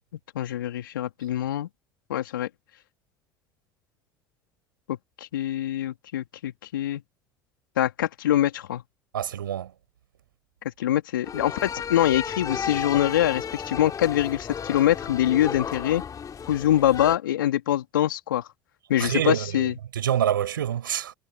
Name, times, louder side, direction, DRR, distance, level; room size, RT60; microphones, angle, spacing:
voice 1, 0.3-1.7 2.1-2.5 4.9-7.0 7.8-8.8 10.8-16.0 16.5-18.5 18.9-19.7, left 12 dB, 75° left, 3.3 m, -24 dB
voice 2, 9.1-9.7 19.0-21.1, right 10 dB, 80° right, 6.0 m, -27 dB
sound 1, 11.2-17.2, left 7 dB, 30° left, 2.8 m, -33 dB
figure-of-eight pair, 70°, 11 cm